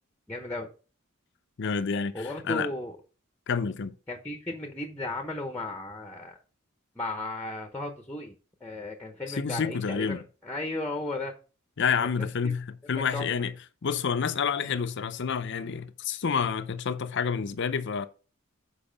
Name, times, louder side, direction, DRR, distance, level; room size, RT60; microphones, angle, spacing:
voice 1, 0.3-0.7 2.1-3.0 4.1-6.4 7.0-8.3 8.6-11.3 12.2-12.5 13.1-13.3, left 2 dB, 10° left, 0.8 m, -35 dB
voice 2, 1.6-2.7 3.5-4.0 9.3-10.2 11.8-13.5 13.8-18.1, left 6 dB, 55° left, 0.5 m, -29 dB
7.0 x 4.8 x 5.1 m
head